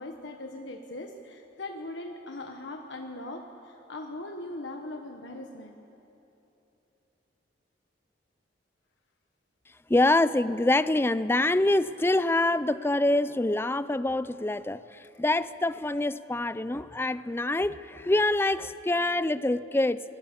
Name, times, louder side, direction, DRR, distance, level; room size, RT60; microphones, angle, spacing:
voice 1, 0.0-5.8, left 2 dB, 85° left, 3 dB, 1.3 m, -40 dB
voice 2, 9.9-20.0, left 2 dB, 15° left, 15 dB, 0.5 m, -25 dB
27.5 x 20.0 x 7.4 m, 3.0 s
head